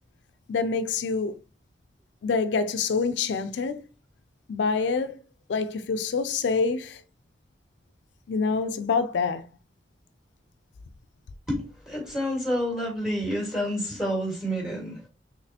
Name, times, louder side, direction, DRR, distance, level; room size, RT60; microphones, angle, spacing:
voice 1, 0.5-1.4 2.2-3.8 4.5-5.2 5.5-7.0 8.3-9.5, left 4 dB, 80° left, 0.4 m, -26 dB
voice 2, 11.9-15.1, equal, ahead, 1.5 m, -28 dB
4.0 x 3.1 x 2.8 m
head